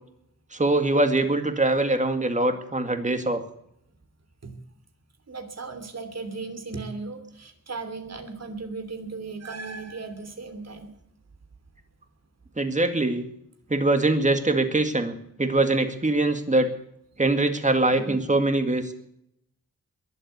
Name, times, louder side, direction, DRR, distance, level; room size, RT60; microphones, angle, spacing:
voice 1, 0.5-3.4 12.6-13.2 13.7-15.1 15.4-16.7 17.2-18.9, right 2 dB, 25° right, 7 dB, 2.1 m, -23 dB
voice 2, 5.3-10.9, right 4 dB, 55° right, 7 dB, 2.9 m, -36 dB
22.0 x 8.0 x 8.2 m, 0.74 s
wide cardioid pair, 95°, 32 cm